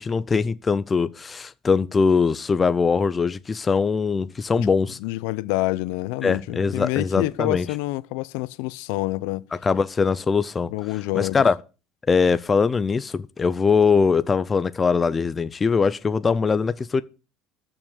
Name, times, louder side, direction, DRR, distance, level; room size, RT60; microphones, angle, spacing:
voice 1, 0.0-5.0 6.2-7.7 9.6-10.7 11.1-11.6 12.1-17.0, left 5 dB, 20° left, 0.5 m, -21 dB
voice 2, 5.0-9.5 10.7-11.5, left 20 dB, 80° left, 0.6 m, -27 dB
13.5 x 6.1 x 6.4 m
cardioid pair, 155°, 0 cm